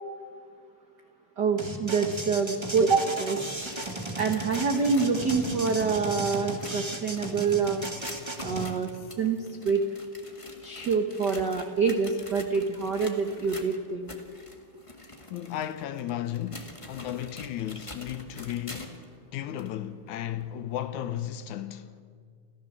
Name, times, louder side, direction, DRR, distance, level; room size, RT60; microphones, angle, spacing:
voice 1, 1.4-3.4 4.2-7.8 8.4-8.9 9.2-9.8 10.6-14.1, right 5 dB, 70° right, 0.9 m, -26 dB
sound 1, 1.6-8.7, right 2 dB, 30° right, 0.4 m, -35 dB
sound 2, 3.4-19.1 19.6-19.7 20.4-20.5 21.4-21.5, left 2 dB, 20° left, 0.8 m, -46 dB
voice 2, 15.3-19.0 19.3-21.9, left 11 dB, 75° left, 1.9 m, -34 dB
29.0 x 14.5 x 7.3 m
omnidirectional pair, 3.8 m